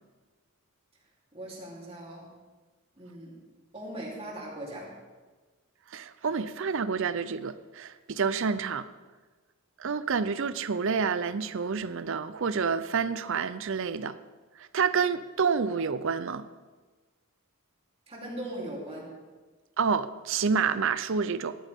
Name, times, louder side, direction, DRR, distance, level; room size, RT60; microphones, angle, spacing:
voice 1, 1.3-2.3 3.0-3.4 3.7-4.9 18.1-19.1, right 1 dB, 25° right, 3.3 m, -39 dB
voice 2, 5.9-8.9 9.8-14.2 14.6-16.5 19.8-21.6, right 5 dB, 60° right, 0.6 m, -28 dB
17.0 x 12.5 x 3.6 m
head